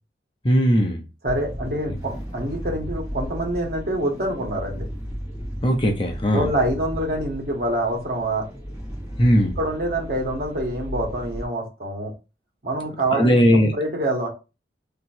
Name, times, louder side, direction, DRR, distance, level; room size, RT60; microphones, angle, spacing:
voice 1, 0.4-1.0 5.6-6.5 9.2-9.6 13.1-13.7, equal, 30° left, 0.7 m, -18 dB
voice 2, 1.2-4.9 6.3-8.5 9.6-12.1 12.6-13.4 13.7-14.3, right 1 dB, 55° right, 1.5 m, -26 dB
sound 1, 1.3-11.5, equal, 10° right, 2.1 m, -35 dB
3.7 x 3.0 x 4.4 m
head